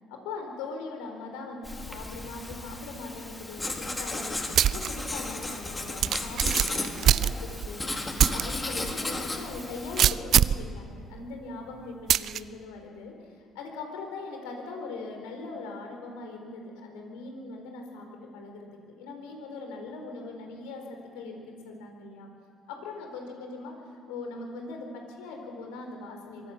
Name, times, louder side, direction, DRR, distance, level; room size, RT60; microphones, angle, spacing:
voice 1, 0.1-18.1 18.3-18.7 19.0-22.3 22.7-23.7 24.1-26.5, left 3 dB, 85° left, 3 dB, 4.3 m, -40 dB
Writing, 1.6-10.0, left 2 dB, 25° left, 4.3 m, -35 dB
sound 1, 4.5-4.9 5.3-5.4 6.0-7.7 8.2-8.4 8.9-9.0 10.0-10.7 12.1-12.4, right 10 dB, 65° right, 0.5 m, -22 dB
23.5 x 15.5 x 8.0 m, 2.1 s
hypercardioid pair, 50°, 0 cm